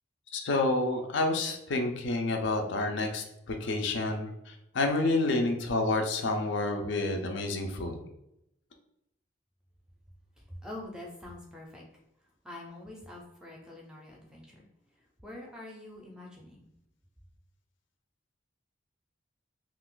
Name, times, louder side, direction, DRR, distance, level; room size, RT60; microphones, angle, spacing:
voice 1, 0.3-8.0, left 2 dB, 65° left, 4 dB, 0.5 m, -29 dB
voice 2, 10.4-11.8 12.4-14.7 15.2-16.7, left 1 dB, 5° right, -2 dB, 0.5 m, -45 dB
2.4 x 2.4 x 3.7 m, 0.82 s
head